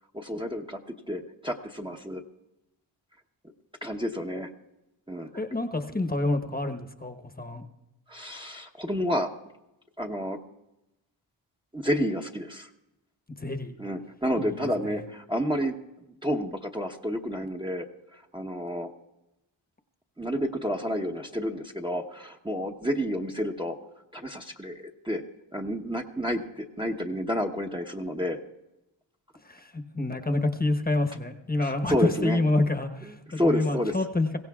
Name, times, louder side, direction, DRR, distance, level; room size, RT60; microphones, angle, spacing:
voice 1, 0.1-0.8 1.1-2.2 3.8-4.5 5.1-5.3 8.1-9.3 10.0-10.4 11.7-12.7 13.8-15.8 16.2-17.9 18.1-18.9 20.2-23.8 24.1-25.2 25.5-28.4 31.6-32.4 33.0-33.9, equal, 10° right, 1 dB, 0.9 m, -30 dB
voice 2, 5.3-7.6 13.4-13.7 14.4-14.7 29.4-34.4, left 2 dB, 20° left, 5 dB, 1.0 m, -28 dB
22.0 x 16.0 x 2.4 m, 0.92 s
cardioid pair, 65°, 46 cm